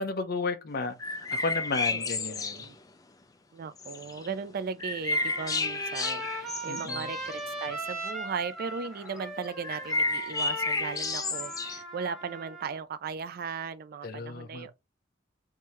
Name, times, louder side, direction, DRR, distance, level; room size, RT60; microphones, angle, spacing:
voice 1, 0.0-2.6 6.6-7.1 14.0-14.7, left 3 dB, 55° left, 0.7 m, -33 dB
sound 1, 1.0-2.7 3.8-4.3 4.8-7.9 8.7-8.8 9.1-9.2 9.4-11.8, left 3 dB, 20° left, 0.4 m, -31 dB
voice 2, 1.9-2.8 3.5-14.7, right 5 dB, 55° right, 0.4 m, -37 dB
Trumpet, 5.1-12.8, right 1 dB, ahead, 1.5 m, -39 dB
3.6 x 2.7 x 3.0 m
head